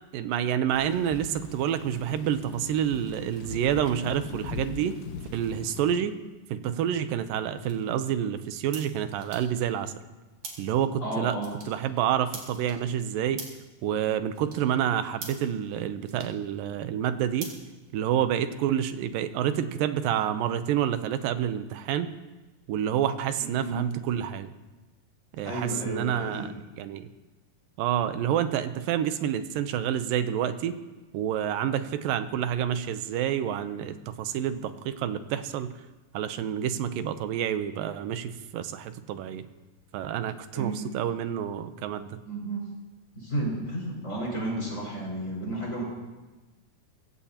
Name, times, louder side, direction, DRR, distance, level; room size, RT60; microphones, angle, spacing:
voice 1, 0.1-5.0 5.3-6.1 6.5-9.9 10.6-11.4 11.7-13.4 13.8-17.5 17.9-22.1 22.7-24.5 25.4-27.1 27.8-30.8 31.1-35.7 36.1-39.4 39.9-42.2, right 10 dB, 85° right, 10 dB, 2.5 m, -28 dB
Thunder / Rain, 0.7-5.9, left 6 dB, 75° left, 2.6 m, -40 dB
sound 1, 6.9-18.4, right 4 dB, 60° right, 3.8 m, -48 dB
voice 2, 11.0-11.5 23.6-23.8 25.4-26.5 40.5-40.8 42.3-42.6 43.1-45.8, right 1 dB, 20° left, -3 dB, 5.8 m, -32 dB
24.5 x 15.5 x 2.9 m, 1.2 s
omnidirectional pair, 3.9 m